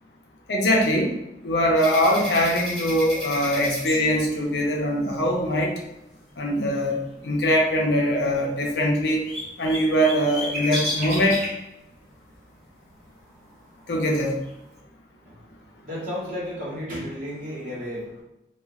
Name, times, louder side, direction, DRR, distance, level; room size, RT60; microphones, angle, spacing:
voice 1, 0.5-1.1 1.4-5.7 6.4-9.3 9.6-11.4 13.9-14.4, equal, 75° left, -1 dB, 0.6 m, -22 dB
sound 1, 1.8-4.8 8.4-8.5 8.7-11.6 13.3-13.4 13.8-14.5, equal, ahead, 0.8 m, -32 dB
voice 2, 15.2-18.2, equal, 50° right, -6 dB, 1.1 m, -33 dB
2.8 x 2.3 x 2.4 m, 0.87 s
head